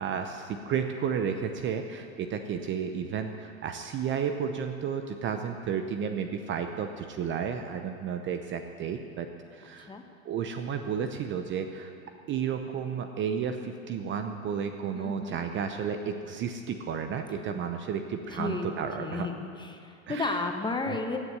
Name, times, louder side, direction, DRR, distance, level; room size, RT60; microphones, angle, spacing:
voice 1, 0.0-9.9 10.2-11.9 12.3-19.3 20.1-20.4 20.9-21.0, right 7 dB, 30° right, 7 dB, 0.7 m, -32 dB
voice 2, 14.9-15.4 18.3-18.7 19.0-21.2, left 3 dB, 10° left, 4 dB, 1.1 m, -33 dB
16.0 x 6.9 x 9.4 m, 2.5 s
hypercardioid pair, 110°, 41 cm